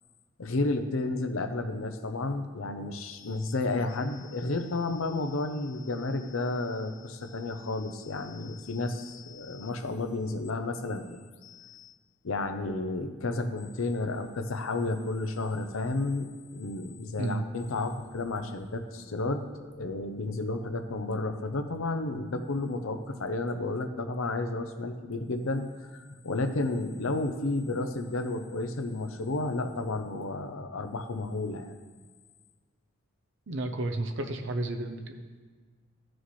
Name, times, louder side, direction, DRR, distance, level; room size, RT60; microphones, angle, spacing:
voice 1, 0.4-11.9 12.2-25.7 25.9-31.7, left 2 dB, 75° left, 7 dB, 0.7 m, -32 dB
voice 2, 33.5-35.2, right 2 dB, 60° right, 5 dB, 0.7 m, -32 dB
13.0 x 6.2 x 3.2 m, 1.5 s
head